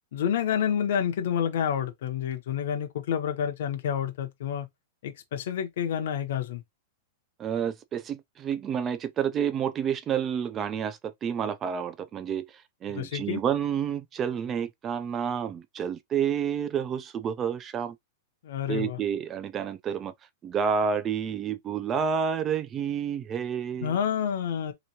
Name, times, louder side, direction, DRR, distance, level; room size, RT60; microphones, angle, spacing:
voice 1, 0.1-4.7 5.0-6.6 12.9-13.4 18.4-19.0 23.8-24.7, left 8 dB, 60° left, 0.7 m, -29 dB
voice 2, 7.4-12.4 12.8-17.9 18.7-20.1 20.4-24.0, right 7 dB, 20° right, 0.3 m, -29 dB
3.3 x 3.0 x 2.8 m
supercardioid pair, 170°, 0 cm